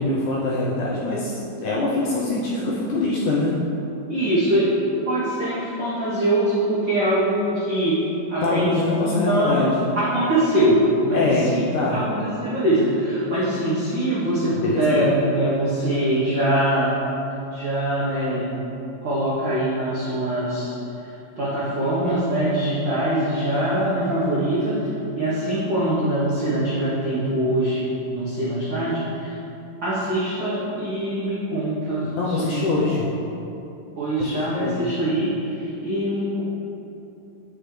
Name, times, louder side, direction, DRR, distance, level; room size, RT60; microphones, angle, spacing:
voice 1, 0.0-3.6 8.4-9.8 11.1-12.0 14.5-15.1 32.2-33.1 34.2-34.8, left 2 dB, 75° left, -5 dB, 2.0 m, -24 dB
voice 2, 4.1-4.7 5.0-8.0 8.3-16.9 17.5-18.5 19.0-20.7 21.4-24.7 25.1-27.9 28.1-29.3 29.8-33.0 34.0-36.4, right 1 dB, 70° right, -10 dB, 1.0 m, -23 dB
8.2 x 6.0 x 3.2 m, 2.8 s
omnidirectional pair, 4.0 m